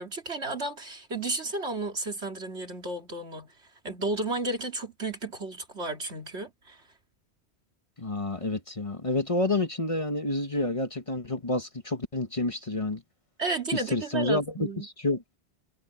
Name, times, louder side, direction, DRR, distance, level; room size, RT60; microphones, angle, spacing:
voice 1, 0.0-3.5 3.8-6.8 13.4-14.9, right 2 dB, 85° right, 3.7 m, -33 dB
voice 2, 8.0-13.0 13.7-14.7 15.0-15.2, left 2 dB, 30° left, 1.4 m, -29 dB
omnidirectional pair, 1.1 m